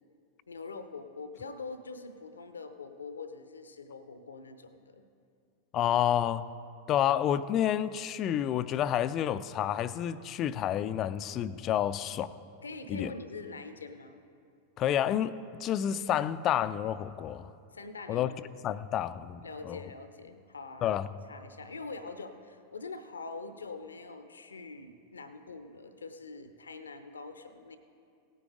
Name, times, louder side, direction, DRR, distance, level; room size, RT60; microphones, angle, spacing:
voice 1, 0.5-5.0 12.6-14.2 17.7-18.8 19.4-20.9 21.3-27.8, left 3 dB, 75° left, 0.7 m, -44 dB
voice 2, 5.7-6.5 6.9-12.4 12.9-13.1 14.8-17.5 18.1-18.3 18.6-19.8 20.8-21.1, left 10 dB, 35° left, 0.4 m, -29 dB
17.5 x 9.4 x 3.8 m
figure-of-eight pair, 90°, 0 cm